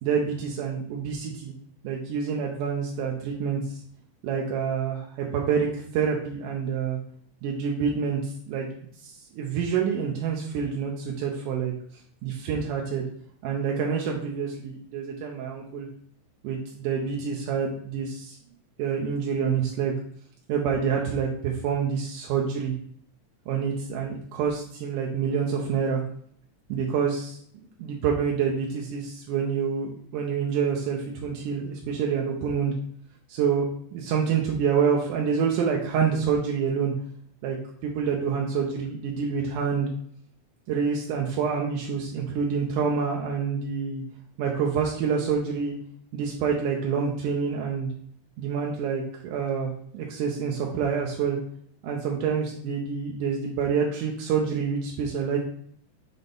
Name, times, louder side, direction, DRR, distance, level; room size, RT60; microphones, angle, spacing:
voice 1, 0.0-1.5 1.8-3.8 4.2-7.0 7.4-8.7 9.0-11.7 12.2-13.1 13.4-15.9 16.4-18.4 18.8-20.0 20.5-22.7 23.5-26.0 26.7-32.7 33.3-33.7 33.9-36.9 37.4-37.6 37.8-39.9 40.7-44.0 44.4-45.7 46.1-47.9 48.4-51.4 51.8-55.4, right 6 dB, 90° right, 0 dB, 2.3 m, -27 dB
6.8 x 3.6 x 3.9 m, 0.64 s
omnidirectional pair, 3.6 m